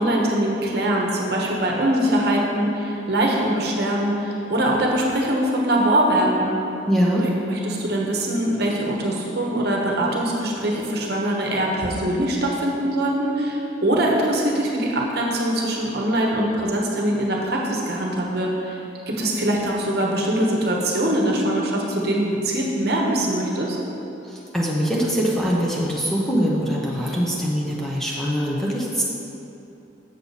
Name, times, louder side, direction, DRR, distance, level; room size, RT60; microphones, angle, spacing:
voice 1, 0.0-6.6 7.2-18.8 19.1-23.8 27.0-27.2, right 1 dB, 55° right, -2 dB, 1.0 m, -22 dB
voice 2, 6.9-7.2 24.2-29.0, equal, ahead, -5 dB, 0.7 m, -23 dB
7.1 x 6.6 x 4.1 m, 2.9 s
head